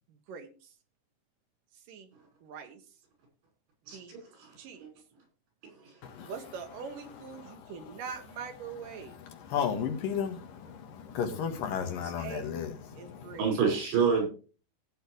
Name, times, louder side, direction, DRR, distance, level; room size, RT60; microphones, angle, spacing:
voice 1, 0.1-0.7 1.9-2.1 2.4-2.8 3.9-4.1 4.6-4.9 6.3-9.2 12.2-12.5 13.0-13.6, right 6 dB, 60° right, 3.0 m, -43 dB
voice 2, 3.9-4.9 5.8-5.9 13.4-14.3, right 6 dB, 85° right, 7.6 m, -28 dB
voice 3, 9.3-13.4, left 7 dB, 65° left, 3.1 m, -34 dB
16.5 x 8.0 x 3.2 m
omnidirectional pair, 4.6 m